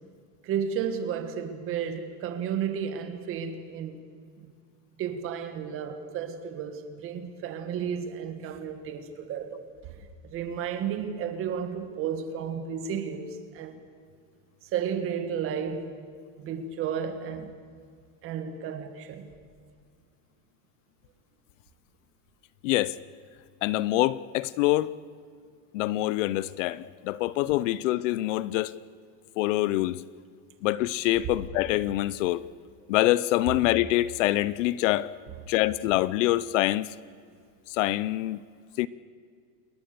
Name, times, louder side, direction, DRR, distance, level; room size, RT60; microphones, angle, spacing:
voice 1, 0.4-4.0 4.4-4.5 5.0-13.8 14.6-15.9 16.4-17.5 18.2-19.3, right 7 dB, 30° right, 1.8 m, -33 dB
voice 2, 22.6-23.0 23.6-24.9 25.7-28.7 29.4-30.0 30.6-32.4 32.9-35.1 35.5-36.9 37.7-38.4 38.8-38.9, left 16 dB, 55° left, 0.6 m, -25 dB
29.0 x 21.0 x 6.8 m
supercardioid pair, 175°, 45 cm